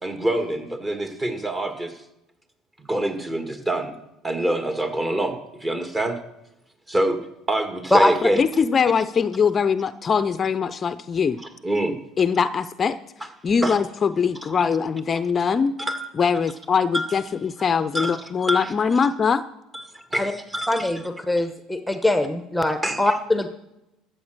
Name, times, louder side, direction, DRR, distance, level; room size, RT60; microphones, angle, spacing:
voice 1, 0.0-1.9 2.8-3.9 4.2-6.2 6.9-7.2 7.5-8.4 11.6-11.9 13.6-13.8 15.8-16.1 16.9-17.1 17.9-18.7 19.9-20.9 22.8-23.1, right 1 dB, 20° right, 6 dB, 2.0 m, -25 dB
voice 2, 8.2-11.4 12.2-13.0 13.4-15.7 16.2-19.4, left 6 dB, 35° left, 13 dB, 0.5 m, -22 dB
voice 3, 20.7-23.5, left 1 dB, ahead, 8 dB, 1.1 m, -22 dB
13.5 x 7.8 x 6.5 m, 0.88 s
hypercardioid pair, 70°, 0 cm